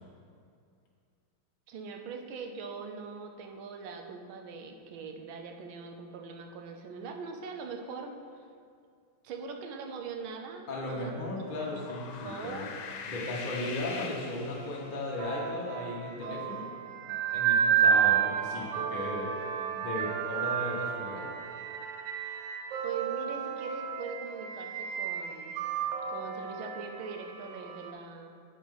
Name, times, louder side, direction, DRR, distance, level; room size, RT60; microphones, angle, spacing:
voice 1, 1.7-8.2 9.2-11.1 11.4-11.7 12.2-12.7 22.8-25.6 26.1-28.3, right 5 dB, 90° right, 3 dB, 1.5 m, -41 dB
voice 2, 10.7-12.7 13.1-16.7 17.3-19.3 19.7-21.2, left 2 dB, 30° left, -4 dB, 1.0 m, -36 dB
sound 1, 11.4-15.1, left 5 dB, 85° left, 1.4 m, -42 dB
sound 2, 15.2-27.9, right 8 dB, 75° right, 1.2 m, -31 dB
7.2 x 4.8 x 5.4 m, 2.3 s
omnidirectional pair, 2.1 m